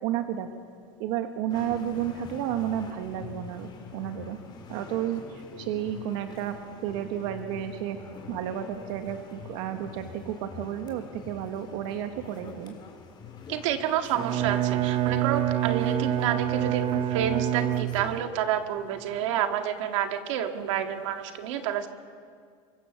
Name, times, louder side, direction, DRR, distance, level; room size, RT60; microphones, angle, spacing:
voice 1, 0.0-0.5 1.0-4.4 4.7-6.6 6.8-8.0 8.3-12.7, right 10 dB, 75° right, 6 dB, 1.5 m, -32 dB
sound 1, 1.5-18.2, left 5 dB, 30° left, 3.5 m, -45 dB
voice 2, 13.5-21.9, right 9 dB, 90° right, 6 dB, 1.9 m, -29 dB
Bowed string instrument, 14.1-18.4, right 13 dB, 40° right, 0.9 m, -27 dB
24.0 x 24.0 x 7.1 m, 2.1 s
supercardioid pair, 135°, 15 cm